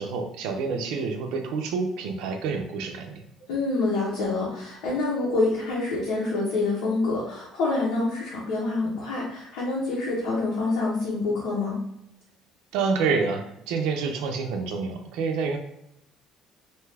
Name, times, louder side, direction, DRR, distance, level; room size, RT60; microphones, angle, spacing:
voice 1, 0.0-3.2 12.7-15.6, right 5 dB, 80° right, 4 dB, 0.5 m, -28 dB
voice 2, 3.5-11.8, left 3 dB, 80° left, -6 dB, 0.8 m, -26 dB
2.7 x 2.3 x 3.2 m, 0.78 s
cardioid pair, 175°, 0 cm